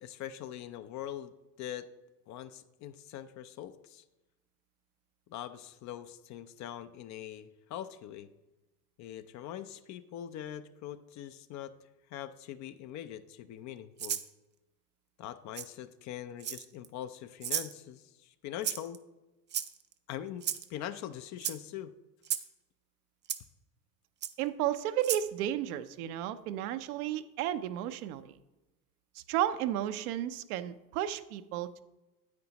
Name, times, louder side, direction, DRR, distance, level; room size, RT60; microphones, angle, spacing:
voice 1, 0.0-1.3 1.6-1.9 2.3-4.0 5.3-8.3 9.0-11.7 12.1-14.2 15.2-19.0 20.1-21.9, left 11 dB, 40° left, 12 dB, 0.5 m, -42 dB
Rattle (instrument), 14.0-14.3 15.5-15.7 16.4-16.8 17.4-17.7 18.6-19.0 19.5-19.9 20.4-20.7 21.4-21.6 22.2-22.5 23.3-23.4 24.2-24.3 25.0-25.3, right 10 dB, 25° right, 0.4 m, -34 dB
voice 2, 24.4-28.4 29.3-31.8, right 12 dB, 65° right, 11 dB, 0.7 m, -33 dB
9.5 x 8.5 x 2.9 m, 1.0 s
hypercardioid pair, 95°, 48 cm